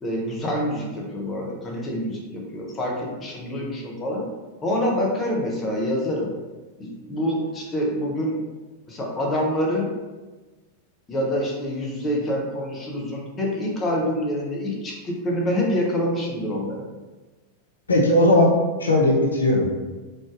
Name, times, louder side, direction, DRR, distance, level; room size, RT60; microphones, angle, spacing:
voice 1, 0.0-4.3 4.6-6.3 6.8-8.4 8.9-9.9 11.1-16.8, equal, 20° left, -2 dB, 0.8 m, -26 dB
voice 2, 17.9-18.5 18.8-19.7, left 1 dB, 75° left, -1 dB, 0.5 m, -17 dB
3.8 x 3.2 x 2.5 m, 1.2 s
figure-of-eight pair, 90°, 0 cm